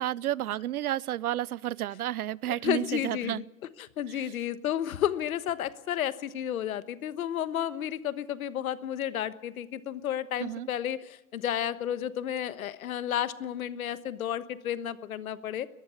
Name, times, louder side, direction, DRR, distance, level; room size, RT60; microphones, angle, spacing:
voice 1, 0.0-3.4 4.1-4.4 10.4-10.7, right 13 dB, 80° right, 24 dB, 0.7 m, -31 dB
voice 2, 2.6-3.4 3.8-15.7, left 10 dB, 70° left, 14 dB, 1.3 m, -32 dB
21.0 x 14.0 x 9.5 m, 0.92 s
hypercardioid pair, 115°, 43 cm